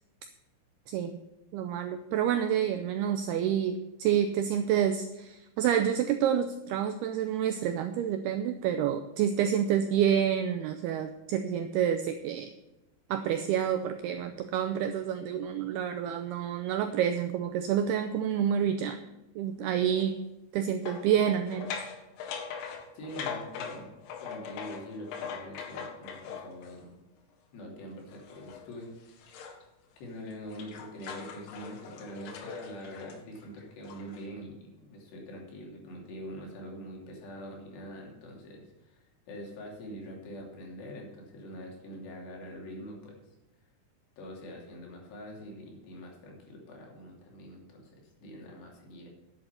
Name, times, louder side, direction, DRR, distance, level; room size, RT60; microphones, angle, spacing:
voice 1, 0.9-1.2 1.5-12.5 13.1-19.0 19.4-20.2 20.5-21.7, right 9 dB, 85° right, 8 dB, 2.3 m, -28 dB
sound 1, 19.9-20.1 20.9-26.8 28.1-29.6 30.0-34.3, left 6 dB, 85° left, 4.1 m, -41 dB
voice 2, 22.9-27.0 27.5-29.3 30.0-43.2 44.2-47.9 48.2-49.1, equal, 65° left, -1 dB, 4.9 m, -44 dB
10.5 x 8.7 x 6.7 m, 0.97 s
omnidirectional pair, 5.3 m